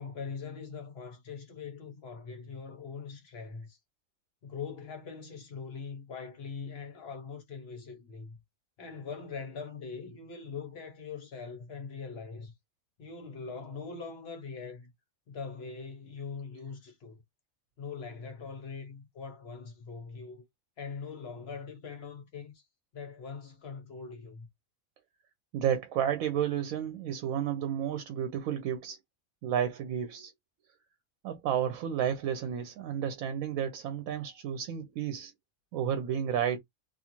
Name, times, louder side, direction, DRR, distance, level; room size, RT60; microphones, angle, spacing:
voice 1, 0.0-3.8 4.4-8.4 8.8-12.5 13.0-14.9 15.3-17.2 17.8-20.5 20.8-22.6 22.9-24.5, left 5 dB, 55° left, 0.9 m, -42 dB
voice 2, 25.5-29.0 29.4-30.3 31.2-35.3 35.7-36.6, right 9 dB, 85° right, 1.0 m, -31 dB
2.5 x 2.4 x 2.9 m
omnidirectional pair, 1.4 m